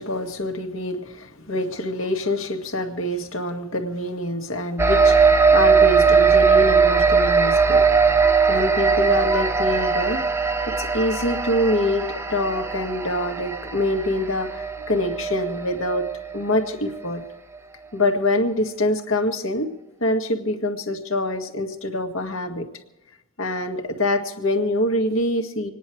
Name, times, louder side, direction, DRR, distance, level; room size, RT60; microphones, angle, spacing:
voice 1, 0.0-7.9 8.5-10.2 10.8-17.2 17.9-19.7 20.0-22.7 23.4-25.7, left 1 dB, 60° left, 3 dB, 1.9 m, -25 dB
sound 1, 4.8-16.6, right 5 dB, 10° right, 0.6 m, -20 dB
26.5 x 10.5 x 4.6 m, 0.98 s
head